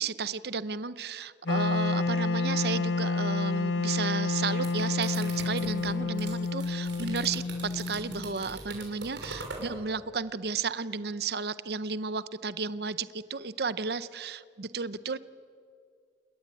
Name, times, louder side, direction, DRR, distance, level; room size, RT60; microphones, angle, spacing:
voice 1, 0.0-15.2, right 5 dB, 60° right, 15 dB, 0.7 m, -33 dB
Wind instrument woodwind instrument, 1.5-8.4, left 3 dB, 80° left, 0.9 m, -29 dB
sound 1, 4.3-9.7, right 3 dB, 85° right, 6.3 m, -42 dB
28.5 x 21.5 x 9.2 m, 2.2 s
head